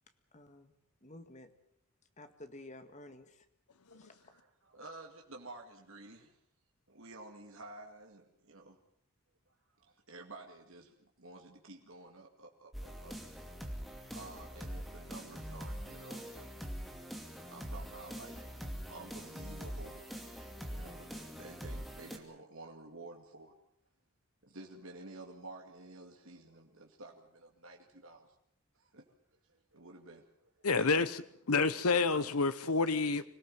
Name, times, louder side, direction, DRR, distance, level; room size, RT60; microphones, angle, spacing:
voice 1, 0.3-0.7 1.0-1.5 2.2-3.5 4.0-4.1, left 1 dB, 35° left, 1.9 m, -52 dB
voice 2, 3.9-6.4 6.9-8.8 9.7-13.2 14.1-16.3 17.3-18.4 18.9-20.0 20.3-20.4 20.7-23.6 24.4-28.3 28.8-29.2 29.5-31.0 31.9-32.0, right 2 dB, 65° right, 2.4 m, -51 dB
sound 1, 12.7-22.2, equal, ahead, 2.5 m, -44 dB
voice 3, 30.6-31.2 31.5-33.2, left 4 dB, 90° left, 1.0 m, -29 dB
25.5 x 17.5 x 7.7 m
head